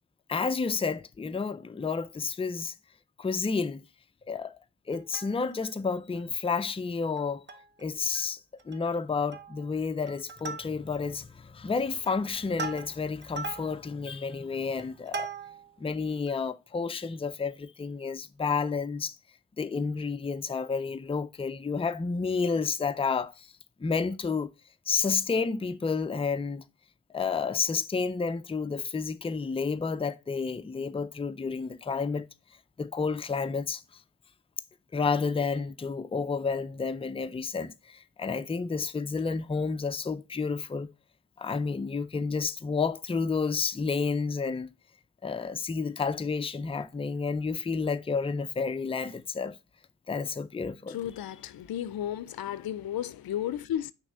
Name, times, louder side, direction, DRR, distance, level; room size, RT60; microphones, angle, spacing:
voice 1, 0.3-2.7 3.2-3.8 4.3-4.6 4.9-7.4 7.8-8.4 8.7-15.3 15.8-19.2 19.6-23.5 23.8-24.5 24.9-26.6 27.1-32.3 32.8-33.8 34.9-40.9 41.4-44.7 45.2-49.6 50.1-51.0, left 5 dB, 15° left, 0.4 m, -30 dB
Plucked string instrument, 4.9-5.7 6.2-6.3 6.5-6.7 7.2-7.8 8.1-8.3 8.6-9.0 9.3-9.7 10.1-11.1 11.6-15.8 16.3-16.4, right 4 dB, 30° right, 0.7 m, -40 dB
voice 2, 50.9-53.9, left 11 dB, 75° left, 0.5 m, -33 dB
5.9 x 3.2 x 5.4 m
cardioid pair, 65°, 36 cm